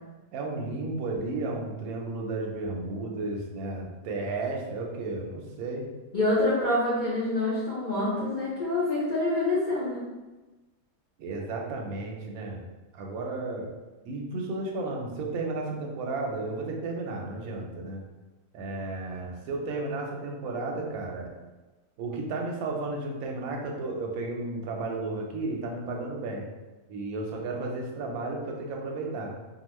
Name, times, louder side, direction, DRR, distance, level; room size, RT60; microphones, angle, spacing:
voice 1, 0.3-5.8 11.2-12.6 12.9-13.7 14.0-18.0 18.5-21.3 22.0-26.4 26.9-29.3, right 2 dB, 70° right, 0 dB, 0.9 m, -33 dB
voice 2, 6.1-10.0, left 2 dB, 45° left, -10 dB, 0.6 m, -26 dB
2.8 x 2.2 x 3.0 m, 1.2 s
omnidirectional pair, 1.8 m